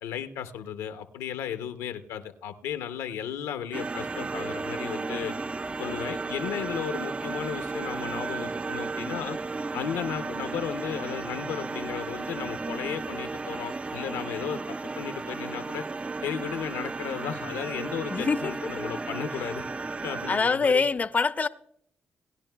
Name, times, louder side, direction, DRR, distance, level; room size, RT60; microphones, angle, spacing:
voice 1, 0.0-5.3 5.8-9.4 9.7-15.8 16.2-19.6 20.0-20.8, left 9 dB, 85° left, 0.6 m, -35 dB
sound 1, 3.7-20.4, right 3 dB, 25° right, 0.3 m, -34 dB
voice 2, 18.1-18.9 20.3-21.5, left 4 dB, 35° left, 0.5 m, -25 dB
19.0 x 10.5 x 2.2 m
supercardioid pair, 50°, 5 cm